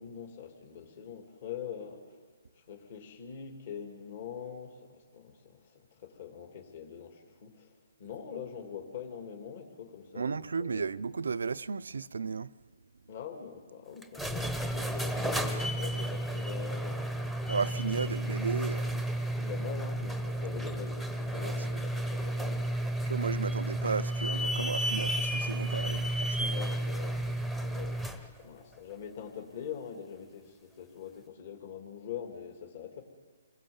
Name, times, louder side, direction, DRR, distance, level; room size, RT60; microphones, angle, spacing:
voice 1, 0.0-2.2 2.5-10.9 13.1-17.1 17.9-18.2 19.4-22.7 26.5-33.0, left 8 dB, 50° left, 2.8 m, -44 dB
voice 2, 10.2-12.5 17.5-19.0 21.4-21.6 23.1-26.6, right 5 dB, 85° right, 0.6 m, -34 dB
sound 1, 14.0-28.3, right 1 dB, 5° left, 1.0 m, -32 dB
27.5 x 21.0 x 7.2 m
hypercardioid pair, 160°, 0 cm